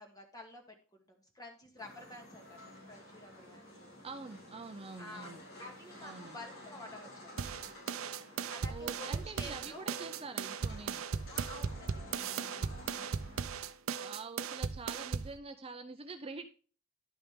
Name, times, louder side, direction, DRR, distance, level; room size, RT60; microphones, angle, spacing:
voice 1, 0.0-4.0 5.0-5.3 5.6-7.8 8.5-10.0 11.3-12.6, left 1 dB, 20° left, 2 dB, 2.1 m, -51 dB
sound 1, 1.8-13.4, left 1 dB, 85° left, 5.4 m, -52 dB
voice 2, 4.0-5.4 6.0-6.4 8.7-11.0 14.0-16.5, right 4 dB, 30° right, 7 dB, 0.6 m, -45 dB
sound 2, 7.4-15.4, right 6 dB, 90° right, 0.6 m, -37 dB
11.5 x 5.8 x 3.6 m, 0.38 s
head